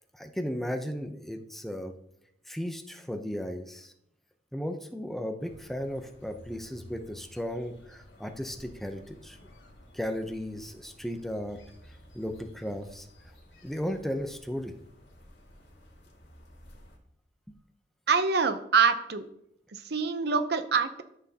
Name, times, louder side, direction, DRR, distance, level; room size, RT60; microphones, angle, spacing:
voice 1, 0.1-1.9 2.5-3.9 4.5-9.4 9.9-11.6 12.1-13.1 13.6-14.7, equal, ahead, 5 dB, 0.6 m, -35 dB
sound 1, 5.4-17.0, equal, 70° left, 2.1 m, -54 dB
voice 2, 18.1-19.3 19.7-21.0, right 5 dB, 60° right, 10 dB, 0.7 m, -25 dB
13.0 x 6.1 x 2.8 m, 0.76 s
head